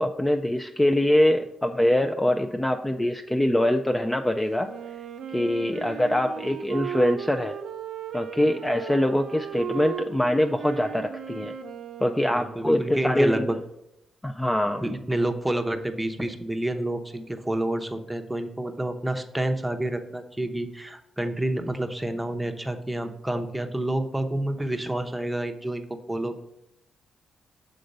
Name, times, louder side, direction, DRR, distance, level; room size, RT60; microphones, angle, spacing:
voice 1, 0.0-4.7 5.3-7.5 8.1-11.5 12.0-13.5 14.2-14.8, left 1 dB, 10° left, 5 dB, 0.4 m, -23 dB
Wind instrument woodwind instrument, 4.6-13.2, right 8 dB, 80° right, 0.5 m, -37 dB
voice 2, 12.3-13.6 14.8-26.4, right 1 dB, 10° right, 6 dB, 0.7 m, -29 dB
6.6 x 3.9 x 5.2 m, 0.84 s
cardioid pair, 90°, 0 cm